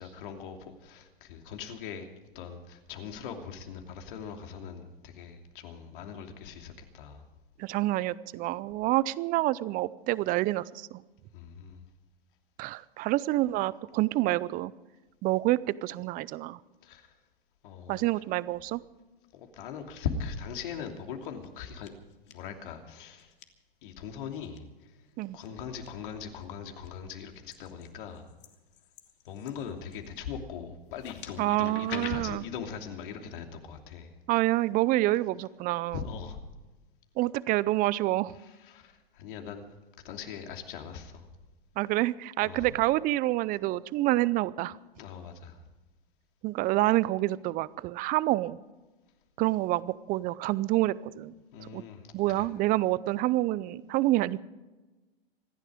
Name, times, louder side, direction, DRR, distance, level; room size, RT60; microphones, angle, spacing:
voice 1, 0.0-2.1 2.3-7.2 11.3-11.8 16.8-17.1 17.6-18.0 19.3-21.9 22.3-23.3 23.8-24.9 25.3-28.3 29.2-34.1 35.9-36.4 38.4-39.6 40.0-41.3 42.4-42.7 45.0-45.6 51.5-52.5, left 7 dB, 60° left, 4 dB, 2.9 m, -40 dB
voice 2, 7.6-11.0 12.6-14.7 15.2-16.6 17.9-18.8 25.2-25.4 31.4-32.4 34.3-36.0 37.2-38.4 41.8-44.8 46.4-48.6 49.4-51.3 51.6-51.8 52.1-54.4, right 17 dB, 30° right, 20 dB, 0.6 m, -27 dB
sound 1, 21.0-21.5 21.8-22.3 23.2-23.5 24.3-24.6 25.4-25.9 26.4-26.9 27.5-30.2 30.9-32.1, left 10 dB, 35° left, 2.1 m, -46 dB
25.5 x 11.0 x 5.0 m, 1.1 s
hypercardioid pair, 115°, 30 cm